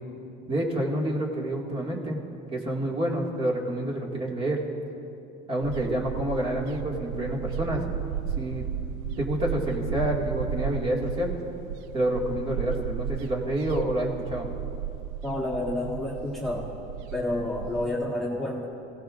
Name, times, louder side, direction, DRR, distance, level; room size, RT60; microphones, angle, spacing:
voice 1, 0.5-2.2 2.5-4.6 5.5-7.9 8.3-8.7 9.2-11.4 11.9-14.5, right 1 dB, 25° right, -2 dB, 2.1 m, -28 dB
sound 1, 5.6-17.9, right 9 dB, 85° right, 0.6 m, -34 dB
voice 2, 15.2-16.7 17.1-18.7, left 1 dB, ahead, -5 dB, 1.7 m, -29 dB
26.0 x 17.0 x 2.5 m, 2.7 s
cardioid pair, 155°, 21 cm